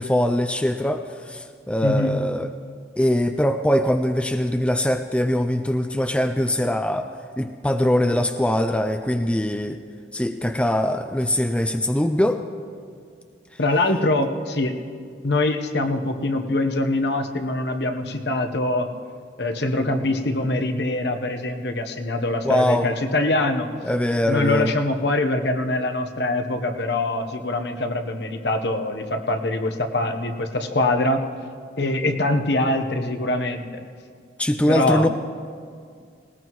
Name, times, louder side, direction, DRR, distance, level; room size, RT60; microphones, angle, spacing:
voice 1, 0.0-2.5 3.0-7.1 7.4-9.8 10.1-12.4 22.4-22.9 23.8-24.7 34.4-35.1, left 1 dB, 5° left, 7 dB, 0.3 m, -22 dB
voice 2, 1.8-2.2 13.6-14.8 15.2-18.9 19.4-23.7 24.3-31.2 31.8-33.6 34.7-35.1, left 2 dB, 65° left, 6 dB, 1.0 m, -23 dB
19.5 x 18.0 x 3.1 m, 2.2 s
head